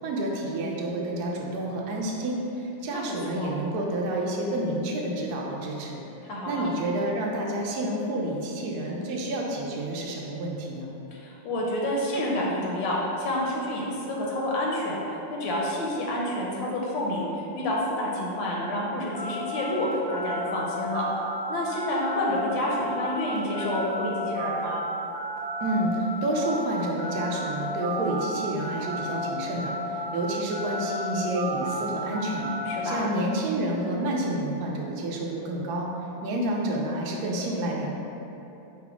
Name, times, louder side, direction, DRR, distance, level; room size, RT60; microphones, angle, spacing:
voice 1, 0.0-6.0 6.5-10.9 25.6-32.5 32.8-35.9 36.2-37.9, right 1 dB, 70° right, -2 dB, 1.0 m, -29 dB
voice 2, 2.9-3.5 6.2-6.6 11.1-15.0 15.3-21.1 21.5-24.8 32.7-33.1, left 1 dB, 75° left, -3 dB, 1.2 m, -29 dB
sound 1, 19.1-29.3 29.5-32.8, equal, 45° left, 0.3 m, -33 dB
4.9 x 2.0 x 4.7 m, 3.0 s
omnidirectional pair, 2.2 m